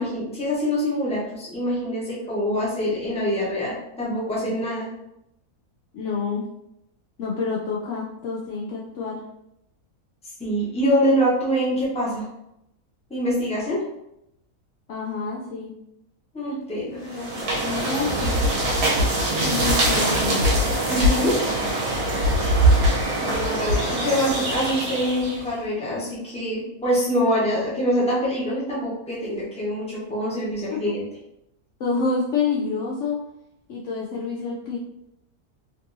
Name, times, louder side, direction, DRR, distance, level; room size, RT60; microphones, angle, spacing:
voice 1, 0.0-4.9 10.4-12.2 13.1-13.8 16.3-17.2 20.9-21.4 23.2-31.0, equal, 5° left, -7 dB, 0.8 m, -25 dB
voice 2, 5.9-6.4 7.2-9.2 14.9-15.7 17.1-18.4 19.4-20.5 30.7-30.8 31.8-33.2 33.7-34.8, left 4 dB, 65° left, -4 dB, 0.8 m, -28 dB
sound 1, 17.1-25.5, right 1 dB, 75° right, 1.5 m, -22 dB
3.5 x 2.7 x 2.6 m, 0.82 s
omnidirectional pair, 1.6 m